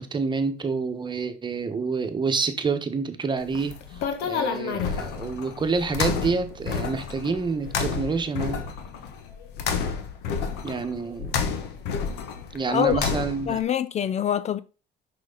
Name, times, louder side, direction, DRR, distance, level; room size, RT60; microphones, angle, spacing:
voice 1, 0.0-8.6 10.6-11.4 12.5-13.6, right 4 dB, 25° right, 1.2 m, -28 dB
sound 1, 3.4-13.6, left 6 dB, 90° left, 1.2 m, -30 dB
voice 2, 12.7-13.0 13.5-14.6, left 9 dB, 40° left, 0.4 m, -24 dB
6.2 x 5.4 x 4.0 m
cardioid pair, 110°, 17 cm